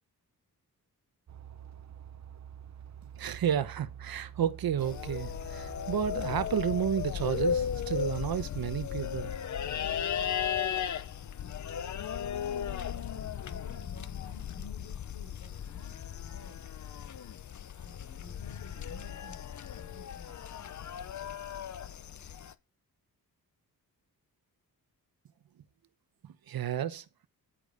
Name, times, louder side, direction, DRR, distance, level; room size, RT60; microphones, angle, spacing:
sound 1, 1.3-6.5, right 9 dB, 50° right, 0.8 m, -47 dB
voice 1, 3.2-9.4 26.5-27.0, right 9 dB, 75° right, 1.0 m, -31 dB
sound 2, 4.8-22.5, left 8 dB, 50° left, 0.8 m, -36 dB
voice 2, 12.8-16.7 17.5-20.3, left 1 dB, 90° left, 7.4 m, -53 dB
10.0 x 8.4 x 5.4 m
wide cardioid pair, 175°, 36 cm